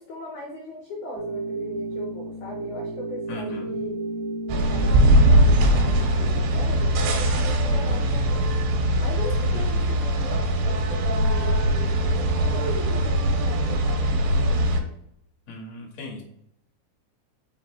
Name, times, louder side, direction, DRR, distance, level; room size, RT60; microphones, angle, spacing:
voice 1, 0.0-4.0 4.5-8.6 9.0-14.7, left 2 dB, 75° left, 0 dB, 1.8 m, -39 dB
sound 1, 1.1-7.2, right 2 dB, 55° right, 2.4 m, -33 dB
voice 2, 3.3-3.7 7.7-8.0 9.4-9.6 15.5-16.2, left 2 dB, 40° left, -1 dB, 1.1 m, -38 dB
sound 2, 4.5-14.8, right 1 dB, 85° right, 3.3 m, -21 dB
5.9 x 5.2 x 4.2 m, 0.74 s
omnidirectional pair, 5.1 m